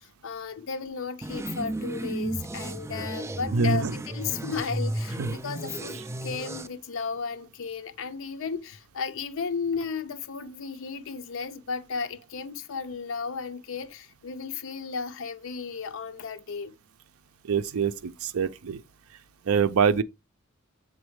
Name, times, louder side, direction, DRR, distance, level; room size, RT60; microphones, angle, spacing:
voice 1, 0.0-16.7, left 5 dB, 65° left, 0.5 m, -34 dB
sound 1, 1.2-6.7, right 1 dB, 15° right, 0.3 m, -33 dB
voice 2, 3.5-3.9 5.2-5.3 17.4-18.8 19.5-20.0, right 5 dB, 80° right, 0.5 m, -24 dB
7.1 x 4.3 x 3.1 m
head